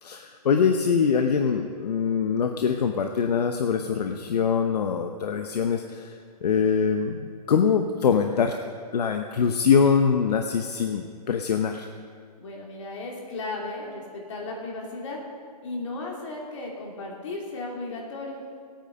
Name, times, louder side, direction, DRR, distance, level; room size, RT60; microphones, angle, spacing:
voice 1, 0.0-6.0 6.4-7.1 7.5-8.5 8.9-11.9, left 6 dB, 70° left, 5 dB, 0.9 m, -23 dB
voice 2, 12.4-15.2 15.6-18.4, left 2 dB, 45° left, -2 dB, 3.1 m, -35 dB
17.0 x 9.0 x 5.3 m, 2.1 s
hypercardioid pair, 170°, 21 cm